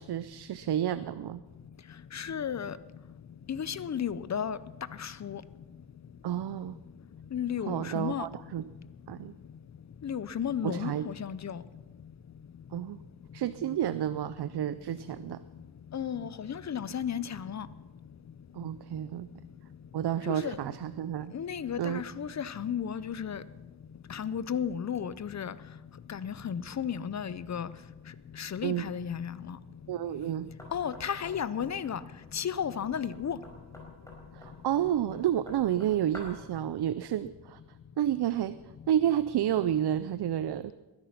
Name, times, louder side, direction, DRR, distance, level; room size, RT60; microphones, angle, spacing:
voice 1, 0.0-1.4 6.2-6.8 7.7-8.6 9.1-9.3 10.6-11.1 12.7-13.0 13.3-15.4 18.5-19.3 19.9-21.3 21.8-22.0 28.6-29.0 29.9-30.5 34.3-37.6 38.0-38.6 38.9-40.7, right 11 dB, 70° right, 0.6 m, -30 dB
voice 2, 2.1-2.7 3.5-4.6 5.0-5.4 7.3-8.3 10.0-11.6 15.9-17.7 20.3-20.6 21.3-23.4 24.1-25.5 26.1-27.7 28.4-29.6 30.7-32.0 32.3-33.4, left 8 dB, 40° left, 0.5 m, -33 dB
Knock, 30.6-36.5, left 1 dB, 10° left, 4.3 m, -50 dB
20.5 x 10.5 x 5.9 m
wide cardioid pair, 165°, 42 cm